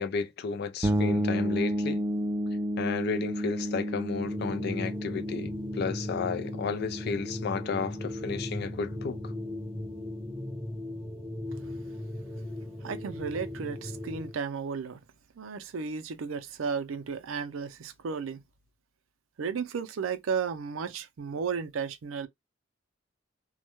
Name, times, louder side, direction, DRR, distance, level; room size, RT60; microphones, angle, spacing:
voice 1, 0.0-2.0 2.8-9.3, left 5 dB, 55° left, 0.4 m, -33 dB
sound 1, 0.8-10.4, equal, 15° right, 0.3 m, -32 dB
sound 2, 4.1-14.4, left 1 dB, 5° left, 0.8 m, -38 dB
voice 2, 12.8-15.0 15.4-18.4 19.4-22.3, right 6 dB, 85° right, 0.4 m, -34 dB
2.2 x 2.1 x 2.9 m
head